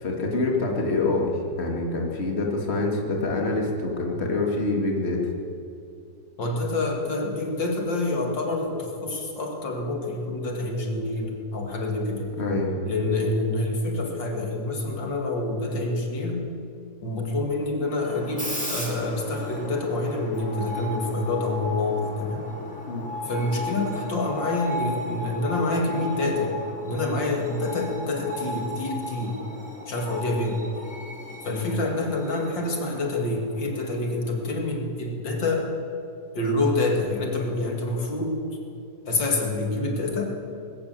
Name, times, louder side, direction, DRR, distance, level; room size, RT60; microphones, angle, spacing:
voice 1, 0.0-1.3 1.6-5.2 12.4-12.7 22.9-23.0, left 2 dB, 35° left, 0 dB, 2.6 m, -26 dB
voice 2, 6.4-12.3 12.8-16.5 17.0-22.5 23.2-26.5 26.8-29.4 29.9-30.6 31.4-35.7 36.3-38.4 39.1-40.3, left 2 dB, 70° left, 2 dB, 3.0 m, -27 dB
Screech, 18.0-34.6, left 1 dB, 5° left, 3.7 m, -36 dB
20.0 x 17.0 x 7.8 m, 2.7 s
omnidirectional pair, 2.0 m